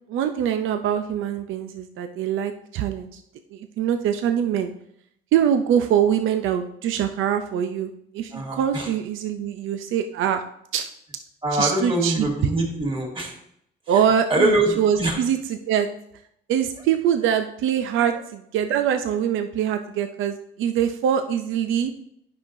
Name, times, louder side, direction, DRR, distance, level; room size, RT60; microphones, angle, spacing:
voice 1, 0.1-3.2 3.5-4.7 5.3-10.4 10.7-10.9 11.5-12.3 13.9-15.9 16.5-21.9, right 9 dB, 85° right, 7 dB, 0.5 m, -23 dB
voice 2, 8.3-8.9 11.4-13.3 14.3-15.2, right 1 dB, 25° right, 0 dB, 2.3 m, -23 dB
9.7 x 5.6 x 2.6 m, 0.72 s
cardioid pair, 90°, 20 cm